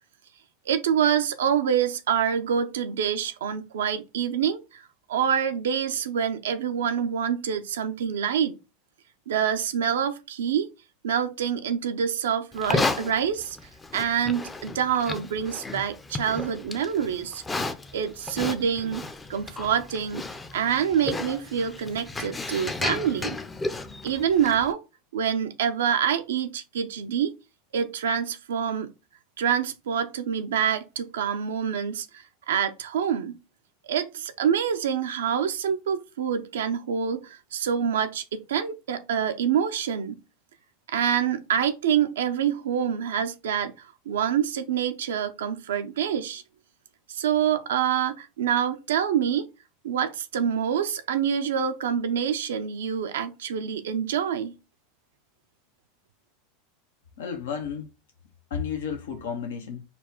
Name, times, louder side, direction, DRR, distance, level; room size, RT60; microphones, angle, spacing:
voice 1, 0.7-4.8 5.1-8.5 9.3-10.7 11.0-13.6 13.9-17.4 17.9-20.3 20.5-23.4 24.0-24.8 25.1-27.3 27.7-28.9 29.4-32.1 32.5-33.4 33.8-40.2 40.9-46.4 47.1-49.5 49.8-54.6, right 8 dB, 85° right, 0.5 m, -26 dB
Livestock farm animals working animals, 12.5-24.7, left 3 dB, 15° left, 0.5 m, -33 dB
voice 2, 57.2-57.9 58.5-59.8, left 7 dB, 80° left, 0.8 m, -32 dB
4.2 x 2.3 x 4.4 m
hypercardioid pair, 110°, 0 cm